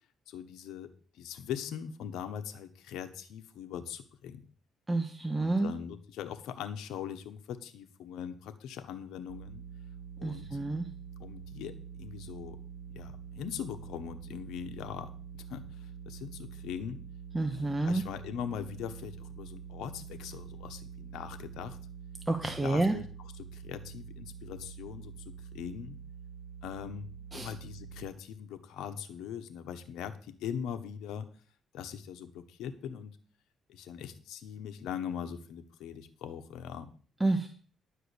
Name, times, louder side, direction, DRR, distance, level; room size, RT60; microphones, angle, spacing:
voice 1, 0.3-4.4 5.3-9.6 10.2-10.6 11.2-12.6 12.9-17.0 17.5-21.8 22.4-26.0 26.6-31.3 31.7-33.2 33.7-36.9, left 8 dB, 85° left, 8 dB, 1.2 m, -41 dB
voice 2, 4.9-5.7 10.2-10.9 17.3-18.0 22.3-22.9 27.3-27.5 37.2-37.5, right 2 dB, 15° right, 5 dB, 1.2 m, -29 dB
sound 1, 9.3-28.1, right 6 dB, 90° right, 0.8 m, -46 dB
11.5 x 5.0 x 8.3 m, 0.43 s
cardioid pair, 90°, 0 cm